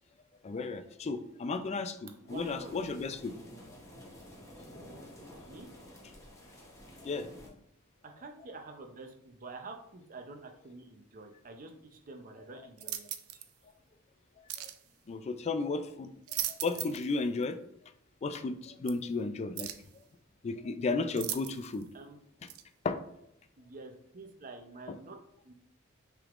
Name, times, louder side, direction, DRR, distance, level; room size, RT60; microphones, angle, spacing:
voice 1, 0.4-3.4 3.9-4.0 7.0-7.6 14.4-14.7 15.1-16.1 16.4-17.6 18.2-19.7 20.4-21.9 22.8-23.0 24.9-25.0, left 3 dB, 30° left, 11 dB, 0.3 m, -34 dB
voice 2, 2.2-2.8 5.5-5.7 8.0-13.1 21.9-22.2 23.6-25.2 25.4-25.5, right 3 dB, 40° right, 4 dB, 0.6 m, -48 dB
sound 1, 2.3-7.5, equal, 15° left, 0.9 m, -51 dB
sound 2, 12.8-13.5 14.5-14.8 16.0-17.1 17.4-17.5 18.9-19.0 19.6-19.9 21.2-21.8 22.5-22.6, right 12 dB, 85° right, 0.4 m, -38 dB
5.9 x 3.5 x 2.5 m, 0.74 s
head